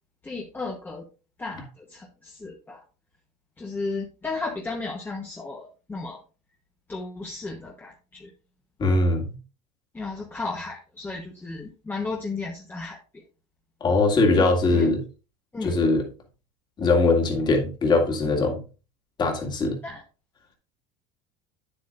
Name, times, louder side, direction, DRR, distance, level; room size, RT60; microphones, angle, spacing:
voice 1, 0.2-1.0 1.4-2.8 3.6-6.2 6.9-8.3 9.9-13.0 14.4-14.9 15.5-15.8 19.8-20.0, left 3 dB, 10° left, 1.1 m, -34 dB
voice 2, 8.8-9.4 13.8-15.0 15.6-16.0 16.8-18.6 19.2-19.8, left 3 dB, 30° left, 2.1 m, -21 dB
9.2 x 7.9 x 2.5 m
cardioid pair, 140°, 16 cm